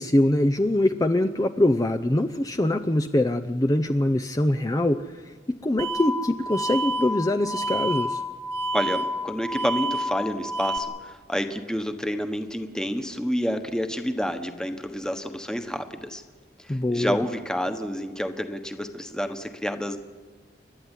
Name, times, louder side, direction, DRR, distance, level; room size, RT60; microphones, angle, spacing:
voice 1, 0.0-8.2 16.7-17.2, left 1 dB, 20° left, 9 dB, 0.6 m, -23 dB
sound 1, 5.8-10.8, equal, 80° right, 3.0 m, -29 dB
voice 2, 8.7-16.2 16.6-20.0, equal, 5° left, 7 dB, 1.3 m, -29 dB
30.0 x 12.5 x 9.9 m, 1.4 s
head